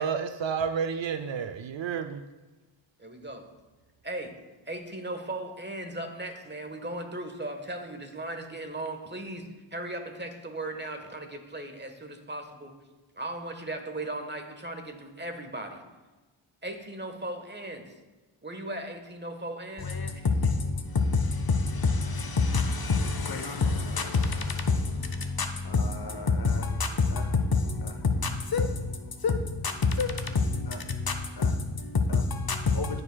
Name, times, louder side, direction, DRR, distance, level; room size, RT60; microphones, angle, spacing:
voice 1, 0.0-2.2, right 6 dB, 65° right, 9 dB, 0.5 m, -30 dB
voice 2, 3.0-3.4 4.0-4.4 4.7-12.7 13.2-15.8 16.6-17.9 18.4-20.3, right 1 dB, 20° right, 5 dB, 1.2 m, -37 dB
voice 3, 19.8-33.0, left 4 dB, 45° left, 6 dB, 0.8 m, -27 dB
14.0 x 4.9 x 2.2 m, 1.2 s
cardioid pair, 45°, 49 cm